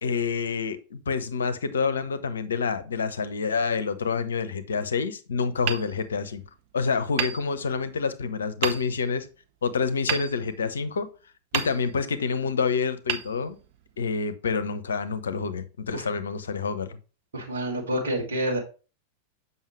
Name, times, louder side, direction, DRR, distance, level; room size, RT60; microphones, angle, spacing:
voice 1, 0.0-6.4 6.7-9.3 9.6-11.1 11.5-13.6 14.0-17.0, left 5 dB, 70° left, 12 dB, 0.7 m, -27 dB
Hammer, 5.6-6.6 7.2-8.1 8.6-9.2 10.1-11.0 11.5-12.3 13.0-14.0, right 9 dB, 50° right, 0.8 m, -33 dB
voice 2, 17.3-18.6, right 1 dB, 65° right, -1 dB, 2.4 m, -28 dB
7.3 x 5.6 x 3.1 m, 0.34 s
figure-of-eight pair, 90°, 0 cm